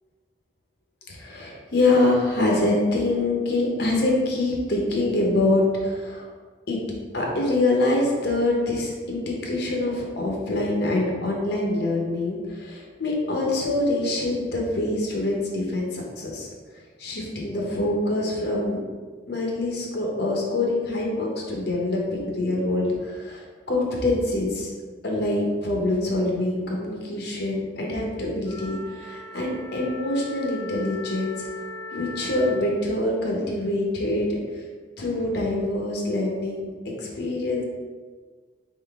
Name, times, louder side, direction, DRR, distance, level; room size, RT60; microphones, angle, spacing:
voice 1, 1.1-6.3 6.7-6.8 7.1-16.5 16.7-18.8 19.3-24.7 25.0-31.5 31.9-34.6 35.0-37.6, left 2 dB, 60° left, -1 dB, 0.8 m, -25 dB
Wind instrument woodwind instrument, 28.4-32.7, left 3 dB, 25° left, 0.7 m, -39 dB
3.8 x 3.8 x 3.5 m, 1.5 s
head